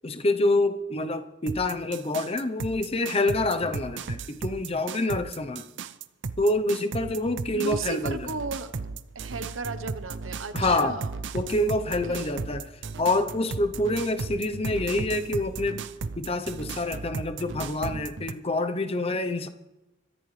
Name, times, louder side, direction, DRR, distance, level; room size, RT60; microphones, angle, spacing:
voice 1, 0.0-5.6 6.4-8.3 10.5-11.0 11.3-12.7 13.0-15.8 16.2-19.5, left 2 dB, 30° left, 9 dB, 0.8 m, -27 dB
sound 1, 1.5-18.3, right 4 dB, 60° right, 0.6 m, -35 dB
voice 2, 7.5-8.7 9.1-11.1 11.8-12.4, right 4 dB, 75° right, 10 dB, 1.1 m, -35 dB
29.5 x 14.0 x 3.3 m, 1.1 s
head